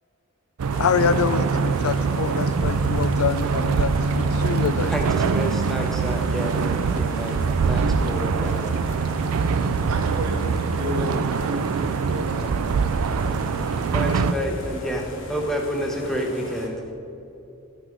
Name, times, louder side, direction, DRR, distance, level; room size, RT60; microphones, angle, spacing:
sound 1, 0.6-14.3, right 5 dB, 90° right, 0.4 m, -23 dB
sound 2, 0.7-16.7, equal, 60° left, 1.4 m, -38 dB
voice 1, 0.8-3.9 4.2-4.9, left 7 dB, 85° left, 15 dB, 0.4 m, -25 dB
voice 2, 4.9-8.7 13.9-15.0 15.3-16.8, equal, ahead, 1 dB, 0.8 m, -29 dB
voice 3, 9.9-11.6 12.1-12.4, equal, 70° right, 0 dB, 0.9 m, -31 dB
12.0 x 6.2 x 5.0 m, 3.0 s
head